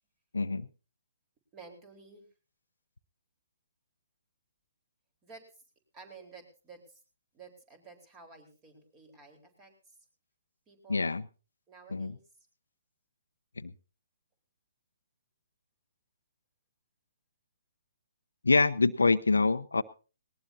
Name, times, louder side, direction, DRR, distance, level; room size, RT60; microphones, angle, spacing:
voice 1, 0.3-0.7 10.9-11.2 11.9-12.1 13.6-13.7 18.4-19.8, left 3 dB, 85° left, 12 dB, 0.7 m, -25 dB
voice 2, 1.5-2.2 5.2-5.6 5.9-7.0 7.3-10.0 10.7-11.1 11.7-12.2, right 4 dB, 25° right, 5 dB, 4.3 m, -52 dB
19.0 x 19.0 x 2.8 m, 0.35 s
figure-of-eight pair, 135°, 0 cm